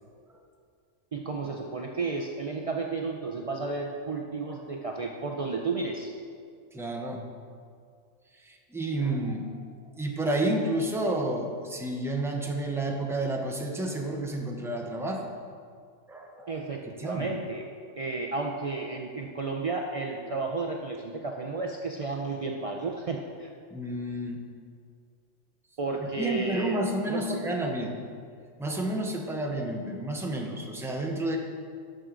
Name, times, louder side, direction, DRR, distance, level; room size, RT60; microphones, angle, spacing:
voice 1, 1.1-6.1 16.5-17.6 18.0-23.5 25.8-26.8 27.1-27.8, right 3 dB, 65° right, 1 dB, 0.3 m, -32 dB
voice 2, 6.7-7.2 8.4-9.5 10.0-15.3 16.1-16.6 17.0-17.3 23.7-24.4 26.2-28.0 28.6-31.4, right 1 dB, 5° right, 1 dB, 0.6 m, -30 dB
13.0 x 6.2 x 3.8 m, 2.2 s
omnidirectional pair, 1.4 m